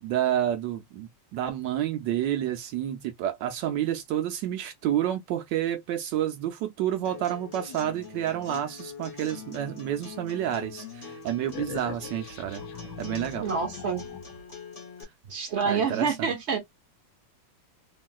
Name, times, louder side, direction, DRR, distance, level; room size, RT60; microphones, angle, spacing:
voice 1, 0.0-12.6 13.0-13.5 15.7-16.3, right 11 dB, 75° right, 1.2 m, -29 dB
Acoustic guitar, 7.0-15.0, left 5 dB, 40° left, 0.5 m, -44 dB
sound 1, 11.4-14.5, left 8 dB, 80° left, 1.3 m, -41 dB
voice 2, 13.4-14.1 15.3-16.6, right 5 dB, 50° right, 0.9 m, -27 dB
3.0 x 2.7 x 2.3 m
omnidirectional pair, 2.1 m